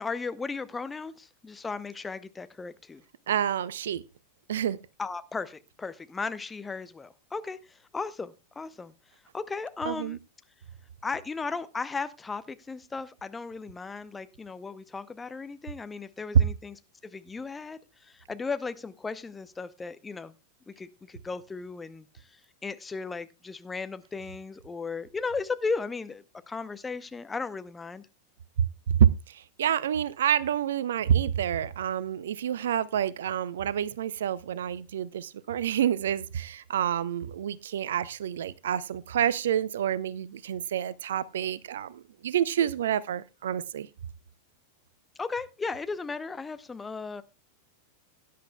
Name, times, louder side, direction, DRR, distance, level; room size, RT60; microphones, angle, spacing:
voice 1, 0.0-3.0 5.0-8.9 9.3-10.2 11.0-20.3 20.7-28.1 45.2-47.2, left 4 dB, 15° left, 0.7 m, -36 dB
voice 2, 3.3-4.0 4.5-4.8 9.8-10.2 29.0-43.9, right 9 dB, 60° right, 0.5 m, -28 dB
18.0 x 10.0 x 2.3 m
figure-of-eight pair, 90°, 0 cm